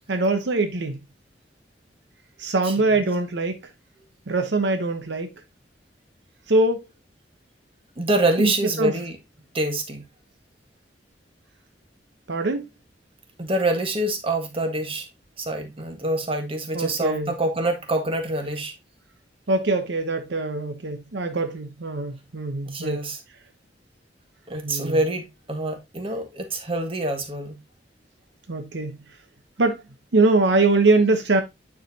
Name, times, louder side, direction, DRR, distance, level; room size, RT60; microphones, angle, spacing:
voice 1, 0.1-1.0 2.4-3.6 4.3-5.3 6.5-6.9 8.4-8.5 8.8-8.9 12.3-12.7 16.7-17.3 19.5-23.0 24.6-25.0 28.5-29.0 29.6-29.8 30.1-31.4, right 2 dB, 75° right, 0.9 m, -22 dB
voice 2, 2.6-3.0 8.0-9.2 9.5-10.0 13.4-15.0 15.4-18.7 22.7-23.2 24.5-27.6, right 1 dB, 30° right, 1.6 m, -26 dB
9.2 x 4.9 x 2.7 m
head